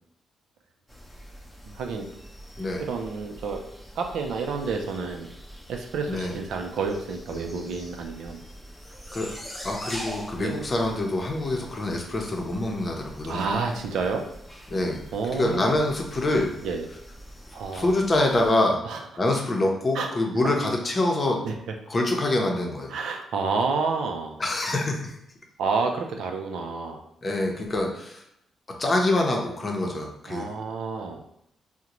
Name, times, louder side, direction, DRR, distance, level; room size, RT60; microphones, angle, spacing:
sound 1, 0.9-18.5, equal, ahead, 0.8 m, -44 dB
voice 1, 1.7-2.1 2.8-3.6 4.0-5.3 5.7-8.4 10.4-10.6 13.3-14.2 15.1-15.7 16.6-16.9 17.5-18.0 18.8-19.0 19.9-20.1 21.4-21.5 22.9-24.4 25.6-27.0 30.3-31.2, right 4 dB, 85° right, 3 dB, 0.5 m, -29 dB
voice 2, 7.3-7.6 9.1-9.3 9.6-13.5 14.7-15.0 15.3-16.6 17.7-18.8 19.2-21.4 21.9-22.9 24.4-25.1 27.2-28.2 28.8-30.5, left 2 dB, 35° left, 1 dB, 0.7 m, -25 dB
3.7 x 2.1 x 2.9 m, 0.78 s
cardioid pair, 90°, 0 cm